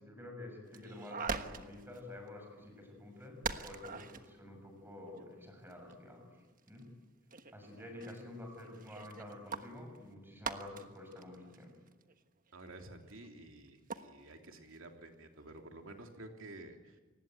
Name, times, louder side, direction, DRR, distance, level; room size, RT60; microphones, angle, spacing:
voice 1, 0.0-6.3 6.7-6.9 7.5-11.7, left 1 dB, 10° right, 4 dB, 6.8 m, -49 dB
sound 1, 0.7-2.0 2.3-2.4 2.6-2.7 3.4-4.3 5.0-6.0 6.5-6.8 7.3-13.3 13.7-14.4 14.7-14.8 15.4-15.6, right 5 dB, 40° right, 1.3 m, -43 dB
voice 2, 12.5-17.0, right 2 dB, 70° right, 4 dB, 3.2 m, -51 dB
28.5 x 19.5 x 9.1 m, 1.3 s
head